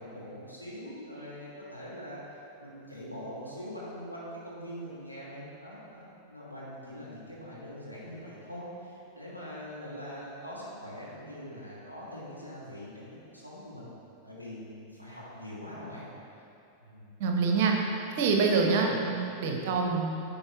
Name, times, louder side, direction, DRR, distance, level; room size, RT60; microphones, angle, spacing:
voice 1, 0.0-13.9 14.2-16.1 16.8-17.1, equal, 90° left, -8 dB, 1.5 m, -43 dB
voice 2, 17.2-17.7 18.1-20.2, right 4 dB, 50° right, 2 dB, 0.7 m, -26 dB
9.7 x 3.9 x 2.9 m, 2.7 s
figure-of-eight pair, 90°, 0 cm